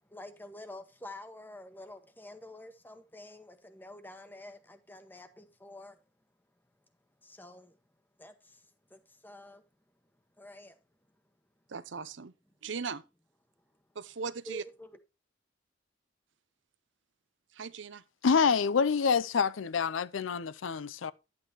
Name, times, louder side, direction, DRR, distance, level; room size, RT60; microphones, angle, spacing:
voice 1, 0.0-6.0 7.2-7.8 8.2-9.6 10.4-10.8 14.4-14.9, left 1 dB, 10° left, 1.1 m, -48 dB
voice 2, 11.7-12.3 12.6-13.0 14.0-14.6 17.5-18.0, right 5 dB, 75° right, 0.7 m, -38 dB
voice 3, 18.2-21.1, left 5 dB, 90° left, 0.5 m, -27 dB
11.0 x 8.6 x 3.0 m
head